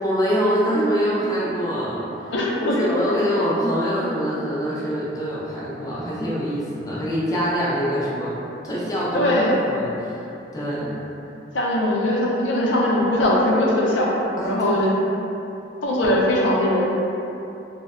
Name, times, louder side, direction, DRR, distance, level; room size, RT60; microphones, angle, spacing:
voice 1, 0.0-2.3 2.6-8.4 8.6-10.3 10.5-10.9 14.4-14.9, equal, 20° left, -8 dB, 0.4 m, -24 dB
voice 2, 2.3-2.8 9.1-9.6 11.5-14.2 14.4-14.9 15.8-16.8, left 1 dB, 85° left, -4 dB, 0.5 m, -20 dB
2.2 x 2.0 x 3.5 m, 2.8 s
head